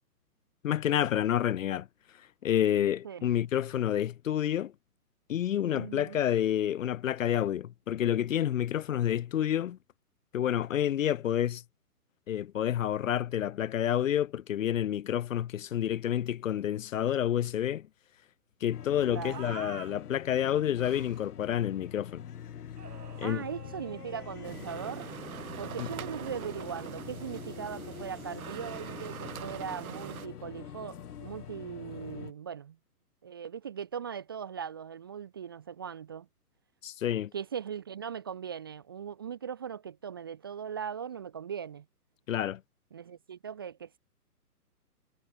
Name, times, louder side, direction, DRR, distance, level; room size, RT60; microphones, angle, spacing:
voice 1, 0.6-1.9 2.4-4.7 5.3-9.8 10.3-11.6 12.3-17.9 18.6-22.2 23.2-23.4 25.8-25.9 36.8-37.3 42.3-42.6, left 10 dB, 55° left, 0.6 m, -29 dB
voice 2, 5.7-6.3 19.1-19.6 23.2-25.1 25.6-32.8 33.2-36.3 37.3-41.9 42.9-44.0, right 7 dB, 15° right, 0.5 m, -39 dB
sound 1, 18.7-32.3, left 9 dB, 75° left, 1.1 m, -45 dB
sound 2, 19.3-19.9 20.8-21.3 22.8-25.1, right 6 dB, 80° right, 3.2 m, -48 dB
sound 3, 24.4-30.3, right 9 dB, 65° right, 1.2 m, -43 dB
hypercardioid pair, 145°, 46 cm